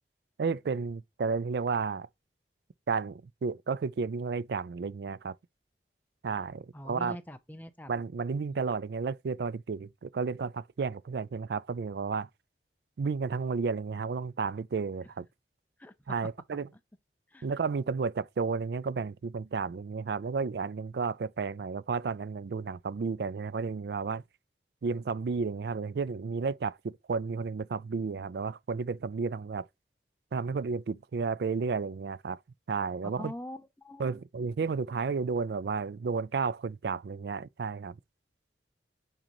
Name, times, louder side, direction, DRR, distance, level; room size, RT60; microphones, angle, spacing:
voice 1, 0.4-2.1 2.9-5.4 6.2-7.2 7.9-12.3 13.0-15.3 16.1-16.7 17.4-24.2 24.8-29.7 30.3-32.4 32.7-33.3 34.0-38.0, right 5 dB, 70° right, 0.4 m, -32 dB
voice 2, 6.7-7.9 8.5-8.6 15.8-15.9 17.3-17.5 33.2-34.2, left 1 dB, 10° left, 0.6 m, -43 dB
8.9 x 3.9 x 3.0 m
head